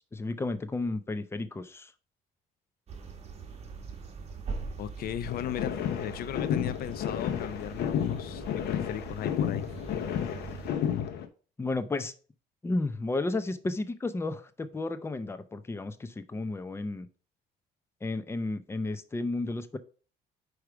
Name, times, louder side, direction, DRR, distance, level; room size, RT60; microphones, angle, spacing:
voice 1, 0.1-1.9 11.6-12.1 12.6-17.1 18.0-19.8, left 2 dB, 15° left, 0.6 m, -32 dB
sound 1, 2.9-10.7, right 5 dB, 40° right, 1.4 m, -42 dB
voice 2, 4.8-9.7, left 11 dB, 60° left, 0.4 m, -37 dB
sound 2, 5.3-11.3, left 9 dB, 80° left, 0.9 m, -32 dB
4.8 x 4.7 x 4.8 m
cardioid pair, 110°, 17 cm